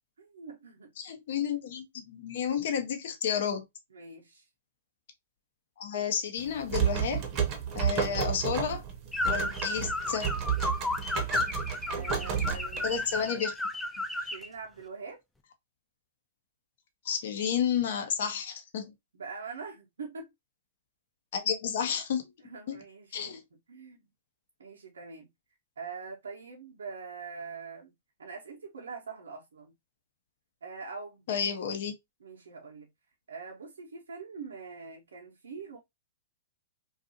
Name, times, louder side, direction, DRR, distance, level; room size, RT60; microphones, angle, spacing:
voice 1, 0.2-0.9 3.9-4.5 8.0-8.2 11.8-13.4 14.2-15.2 19.1-20.3 22.4-23.4 23.7-24.1 24.6-25.3 25.8-27.9 28.2-29.7 30.6-31.3 32.2-32.9 33.3-35.8, right 5 dB, 80° right, 0.7 m, -44 dB
voice 2, 1.0-3.6 5.8-7.3 7.8-8.8 9.2-10.3 12.8-13.5 17.0-18.9 21.3-22.2 22.7-22.8 23.1-23.4 31.3-31.9, left 7 dB, 65° left, 0.6 m, -31 dB
sound 1, 6.4-13.2, right 8 dB, 35° right, 0.7 m, -31 dB
sound 2, 9.1-14.5, left 2 dB, 5° left, 0.4 m, -33 dB
2.6 x 2.4 x 2.6 m
hypercardioid pair, 115°, 0 cm